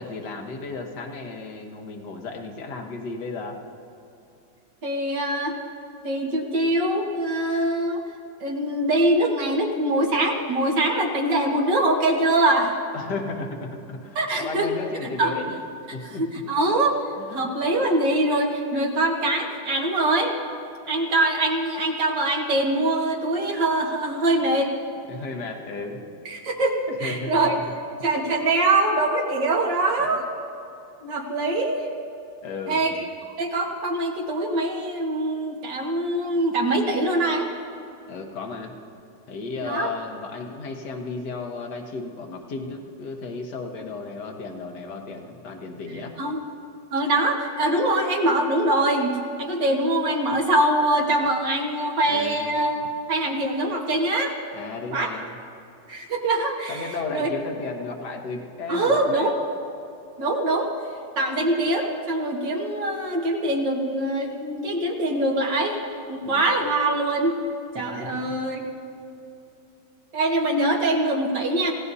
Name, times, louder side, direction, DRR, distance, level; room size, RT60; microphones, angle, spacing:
voice 1, 0.0-3.6 12.9-15.6 15.9-16.3 17.2-17.5 25.1-26.1 26.9-27.6 30.0-30.2 32.4-32.9 38.1-38.7 39.3-46.2 52.1-52.5 54.5-55.3 56.7-59.4 66.2-66.5 67.8-68.4, left 3 dB, 70° left, 2 dB, 1.9 m, -34 dB
voice 2, 4.8-5.5 6.0-8.0 8.4-12.8 14.2-14.7 15.2-15.4 16.2-17.0 17.3-20.4 20.9-24.7 26.3-27.6 28.0-30.2 31.0-31.9 32.7-32.9 33.4-37.5 39.6-39.9 46.2-46.4 46.9-49.1 49.4-52.8 53.1-54.3 54.9-55.1 55.9-57.3 58.7-59.3 60.2-60.7 61.2-65.8 66.1-67.3 67.7-68.6 70.1-71.7, right 1 dB, 85° right, 0 dB, 2.4 m, -23 dB
29.0 x 16.5 x 2.8 m, 2.7 s
omnidirectional pair, 1.9 m